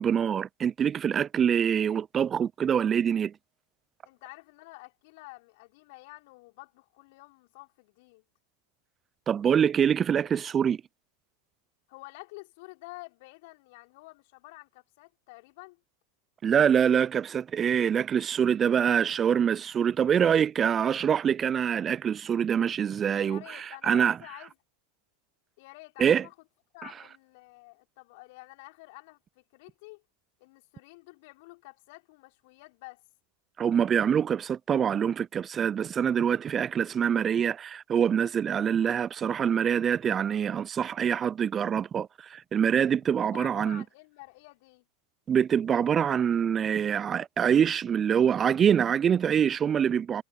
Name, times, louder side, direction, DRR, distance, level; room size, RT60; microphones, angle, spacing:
voice 1, 0.0-3.3 9.3-10.8 16.4-24.2 26.0-26.3 33.6-43.8 45.3-50.2, right 8 dB, 25° right, 0.5 m, -25 dB
voice 2, 4.0-8.2 11.9-15.8 23.2-24.5 25.6-26.3 26.7-30.0 30.4-33.0 43.0-44.8, left 24 dB, 55° left, 3.8 m, -49 dB
hypercardioid pair, 90°, 0 cm